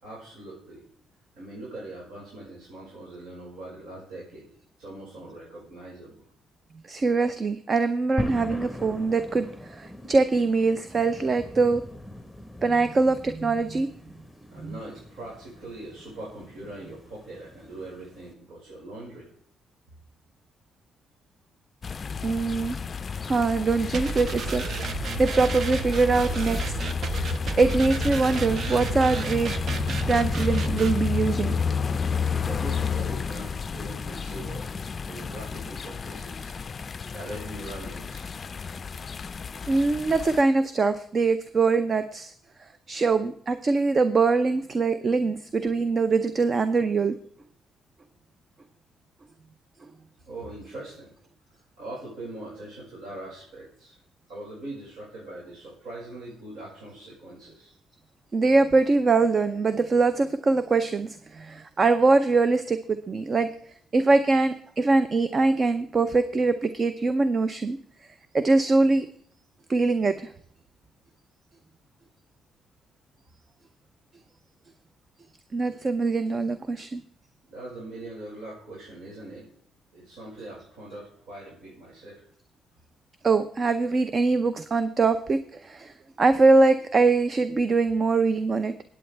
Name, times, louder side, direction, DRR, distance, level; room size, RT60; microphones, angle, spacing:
voice 1, 0.0-0.8 1.3-4.5 4.8-6.2 14.5-19.3 32.4-34.8 35.1-36.5 37.1-38.3 50.3-51.1 51.8-54.0 54.3-57.7 77.5-79.5 79.9-82.2, right 1 dB, 80° right, -6 dB, 5.2 m, -41 dB
voice 2, 6.9-11.8 12.6-13.9 14.6-14.7 22.2-22.8 23.3-26.9 27.6-29.6 30.1-31.5 39.7-42.3 42.6-47.2 58.3-63.5 63.9-67.8 68.3-69.1 69.7-70.3 75.5-77.0 83.2-88.7, right 3 dB, 40° right, 11 dB, 0.7 m, -23 dB
sound 1, 8.2-18.3, left 1 dB, ahead, 1.3 m, -41 dB
sound 2, 21.8-40.4, left 5 dB, 40° left, 0.4 m, -31 dB
sound 3, 23.9-31.0, right 5 dB, 55° right, 1.0 m, -32 dB
20.5 x 8.7 x 3.4 m, 0.62 s
cardioid pair, 90°, 0 cm